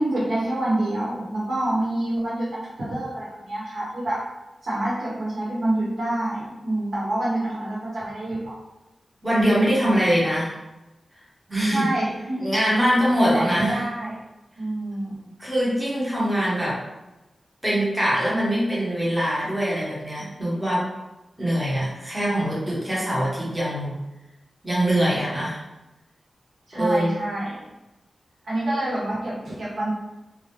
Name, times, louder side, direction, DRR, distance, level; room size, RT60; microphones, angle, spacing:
voice 1, 0.0-4.2 4.6-8.5 11.6-12.4 13.2-14.2 14.6-15.3 26.7-27.6 28.4-29.9, right 1 dB, 90° right, -8 dB, 0.9 m, -27 dB
voice 2, 9.2-10.6 11.5-11.9 12.4-13.8 15.4-16.8 17.6-20.9 21.4-23.9 24.6-25.6 26.7-27.1, equal, 5° right, -8 dB, 0.8 m, -23 dB
2.1 x 2.0 x 2.8 m, 0.99 s
wide cardioid pair, 140°, 0 cm